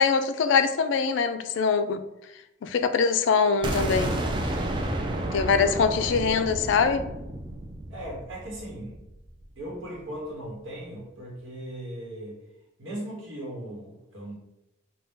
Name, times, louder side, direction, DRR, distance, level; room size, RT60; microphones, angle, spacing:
voice 1, 0.0-2.0 2.6-4.2 5.3-7.1, left 5 dB, 70° left, 9 dB, 0.3 m, -23 dB
sound 1, 3.6-9.4, right 1 dB, 25° right, 0.4 m, -31 dB
voice 2, 7.9-9.0 9.6-12.4 12.8-14.4, right 1 dB, 90° right, -3 dB, 1.0 m, -38 dB
3.9 x 2.2 x 3.6 m, 0.90 s
head